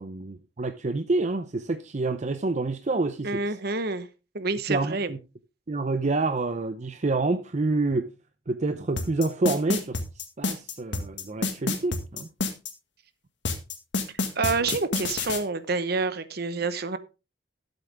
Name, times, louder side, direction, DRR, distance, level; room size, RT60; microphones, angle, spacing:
voice 1, 0.0-3.4 4.7-5.2 5.7-8.1 8.5-10.0 10.4-12.3, right 3 dB, 40° right, 0.6 m, -27 dB
voice 2, 3.2-4.1 4.3-5.1 14.3-17.0, right 3 dB, 60° right, 1.1 m, -28 dB
sound 1, 9.0-12.7 13.5-15.4, left 3 dB, 80° left, 1.8 m, -28 dB
12.5 x 8.0 x 3.5 m
head